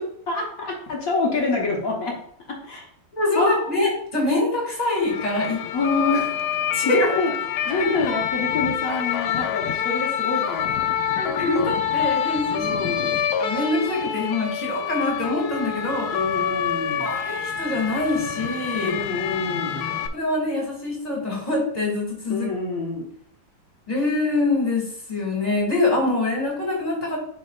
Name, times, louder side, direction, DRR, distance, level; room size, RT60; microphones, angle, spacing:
voice 1, 0.3-2.2 2.5-2.9 3.3-3.8 5.7-6.3 6.8-10.8 12.5-13.1 16.1-17.1 18.8-19.9 22.3-23.1, left 3 dB, 50° left, -1 dB, 1.6 m, -27 dB
voice 2, 3.1-5.6 6.7-7.2 7.8-7.9 11.2-12.6 13.4-16.1 17.0-19.0 20.1-22.5 23.9-27.2, left 2 dB, 20° left, -2 dB, 2.5 m, -24 dB
sound 1, 5.0-20.1, left 9 dB, 70° left, 1.0 m, -26 dB
9.9 x 4.3 x 2.5 m, 0.65 s
omnidirectional pair, 2.1 m